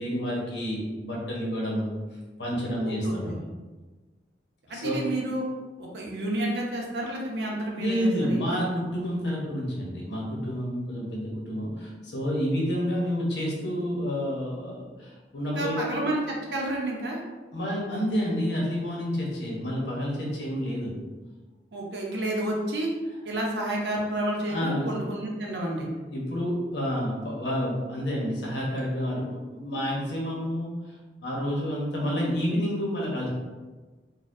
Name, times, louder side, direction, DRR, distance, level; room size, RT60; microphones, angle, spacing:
voice 1, 0.0-1.9 2.4-3.4 4.7-5.0 7.8-15.9 17.5-20.9 24.5-24.9 26.1-30.9 31.2-33.3, equal, 80° left, -3 dB, 1.0 m, -29 dB
voice 2, 2.8-3.3 4.7-5.4 5.8-8.6 15.6-17.2 21.7-22.9 23.2-25.9, right 1 dB, 75° right, -2 dB, 0.7 m, -30 dB
4.0 x 2.3 x 2.6 m, 1.3 s
head